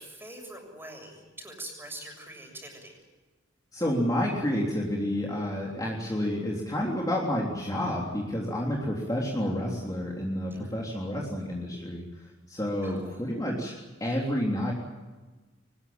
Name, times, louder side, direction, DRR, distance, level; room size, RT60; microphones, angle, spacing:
voice 1, 0.0-3.0 10.5-10.7 12.8-13.5, right 1 dB, 10° right, 3 dB, 7.1 m, -44 dB
voice 2, 3.7-12.0 12.5-13.7 14.0-14.7, left 1 dB, 20° left, -2 dB, 3.5 m, -29 dB
23.5 x 20.5 x 8.8 m, 1.2 s
head